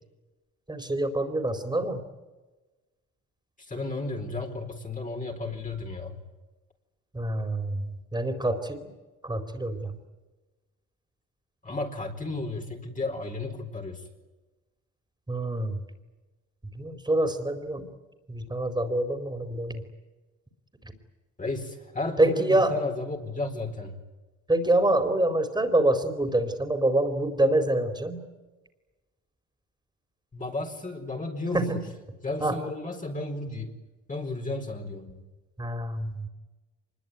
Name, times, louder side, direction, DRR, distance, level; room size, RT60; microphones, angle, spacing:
voice 1, 0.7-2.0 7.1-8.9 9.2-10.0 15.3-15.8 16.7-17.9 18.3-19.8 20.8-20.9 22.2-22.7 24.5-28.2 31.5-31.8 32.4-32.6 35.6-36.3, right 1 dB, 15° right, 8 dB, 4.2 m, -26 dB
voice 2, 3.6-6.2 11.6-14.0 21.4-24.0 30.3-31.8 32.2-33.8 34.1-35.2, left 2 dB, 25° left, 2 dB, 4.4 m, -33 dB
24.5 x 22.0 x 9.6 m, 1.2 s
cardioid pair, 90°, 30 cm